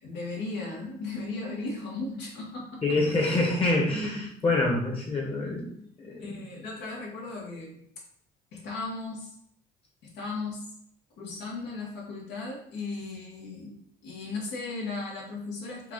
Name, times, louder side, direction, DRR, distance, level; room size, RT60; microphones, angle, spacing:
voice 1, 0.0-2.8 6.2-7.8 8.5-9.3 10.1-10.6 11.2-13.7 14.0-15.9, left 3 dB, 80° left, -2 dB, 1.4 m, -36 dB
voice 2, 2.8-5.7 6.0-6.4, left 2 dB, 35° left, -1 dB, 1.2 m, -26 dB
4.6 x 2.4 x 3.7 m, 0.67 s
cardioid pair, 110°, 18 cm